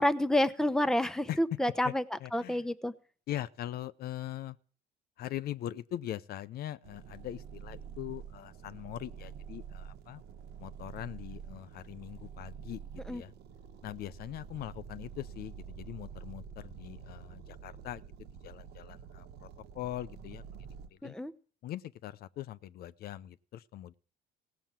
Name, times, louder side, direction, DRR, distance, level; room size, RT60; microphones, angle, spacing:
voice 1, 0.0-2.9 13.1-13.2 21.0-21.3, left 1 dB, 5° left, 0.9 m, -29 dB
voice 2, 2.2-2.6 3.3-4.6 5.2-10.2 10.6-12.8 13.1-13.3 13.8-18.0 18.4-19.5 19.7-20.4 21.0-21.1 21.6-24.0, left 13 dB, 65° left, 0.7 m, -41 dB
sound 1, 6.8-20.9, right 7 dB, 80° right, 1.5 m, -47 dB
17.0 x 7.1 x 7.5 m
cardioid pair, 110°, 17 cm